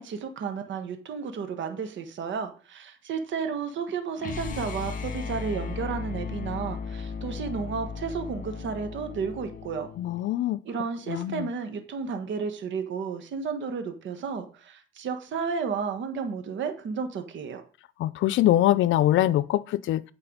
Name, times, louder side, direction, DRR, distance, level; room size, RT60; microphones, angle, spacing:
voice 1, 0.0-9.9 10.6-17.6, right 5 dB, 70° right, 1.4 m, -32 dB
sound 1, 4.2-10.2, left 5 dB, 45° left, 1.4 m, -36 dB
voice 2, 10.0-10.6 11.1-11.5 18.0-20.0, left 13 dB, 80° left, 0.5 m, -23 dB
8.7 x 4.8 x 5.1 m
cardioid pair, 90°, 20 cm